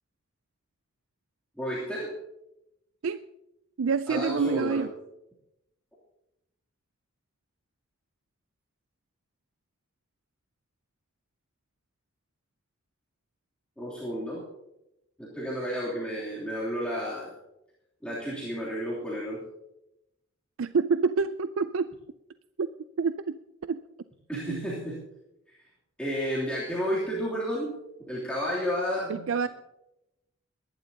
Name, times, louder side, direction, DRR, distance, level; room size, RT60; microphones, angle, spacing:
voice 1, 1.6-2.1 4.1-4.8 13.8-14.4 15.2-17.3 18.0-19.4 24.3-25.0 26.0-27.7 28.1-29.5, equal, 5° left, -8 dB, 3.0 m, -31 dB
voice 2, 3.8-4.9 20.6-21.9 22.6-22.7 23.0-23.4 23.6-23.8 24.3-24.6 29.1-29.5, right 5 dB, 70° right, 12 dB, 0.4 m, -27 dB
23.0 x 11.5 x 2.9 m, 0.88 s
head